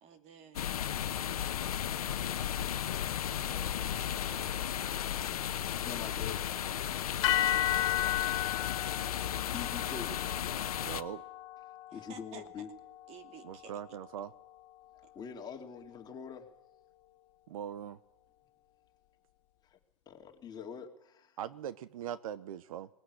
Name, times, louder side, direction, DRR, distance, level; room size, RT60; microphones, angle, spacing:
voice 1, 0.0-1.0 3.4-4.7 7.5-8.7 11.9-12.7 13.1-13.8, right 6 dB, 35° right, 7 dB, 2.6 m, -54 dB
sound 1, 0.5-11.0, left 10 dB, 80° left, 1.2 m, -34 dB
voice 2, 5.7-6.5 9.1-10.1 11.9-12.7 15.1-16.4 19.7-19.8 20.1-21.3, left 7 dB, 20° left, 3 dB, 3.0 m, -45 dB
sound 2, 7.2-15.5, left 14 dB, 55° left, 1.5 m, -35 dB
voice 3, 10.8-11.2 13.4-14.3 17.5-18.0 21.4-22.9, right 10 dB, 70° right, 15 dB, 1.0 m, -41 dB
19.0 x 18.5 x 9.8 m, 0.84 s
hypercardioid pair, 130°, 19 cm